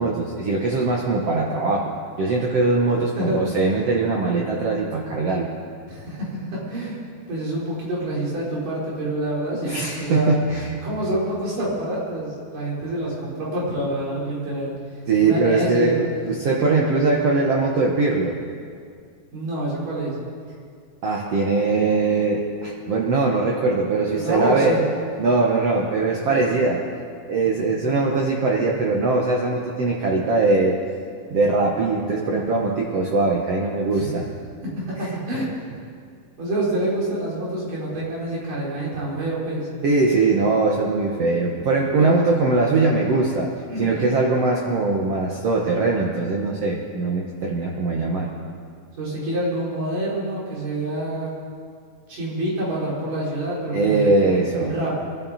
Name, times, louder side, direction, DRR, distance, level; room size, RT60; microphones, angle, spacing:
voice 1, 0.0-1.9 2.2-5.5 9.6-10.9 15.1-18.4 21.0-24.8 25.2-26.9 27.3-30.8 31.3-34.2 39.8-48.3 53.7-54.7, right 3 dB, 55° right, -2 dB, 2.0 m, -21 dB
voice 2, 5.9-7.0 7.3-10.4 10.8-14.7 15.2-16.0 19.3-20.2 24.1-24.9 33.8-34.1 34.6-35.4 36.4-39.7 42.0-42.2 43.7-44.0 49.0-51.3 52.1-54.1 54.5-54.9, right 1 dB, 75° right, -6 dB, 6.0 m, -27 dB
24.0 x 13.0 x 4.2 m, 2.2 s
omnidirectional pair, 3.9 m